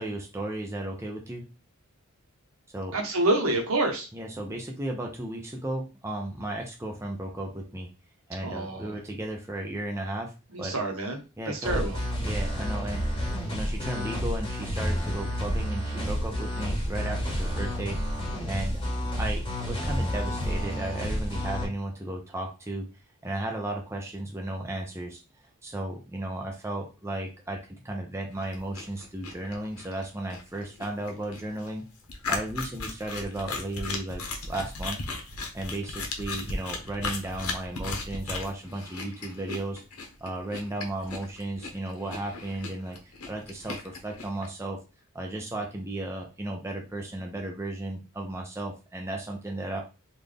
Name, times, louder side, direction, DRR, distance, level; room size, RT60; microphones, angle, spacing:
voice 1, 0.0-1.5 2.7-2.9 4.1-7.9 8.3-10.3 10.6-10.7 11.4-11.9 12.2-13.1 13.5-18.0 18.5-18.8 19.1-22.9 23.2-25.2 25.6-31.8 32.3-35.0 35.5-39.8 40.2-43.0 43.3-44.8 45.1-49.8, right 1 dB, 10° right, 1 dB, 0.5 m, -34 dB
voice 2, 2.9-4.1 8.4-8.9 10.5-12.0, right 2 dB, 65° right, 3 dB, 1.0 m, -28 dB
sound 1, 11.6-21.6, equal, 20° left, 1.7 m, -30 dB
sound 2, 28.3-44.5, left 3 dB, 80° left, 0.9 m, -37 dB
3.8 x 2.5 x 3.3 m, 0.30 s
head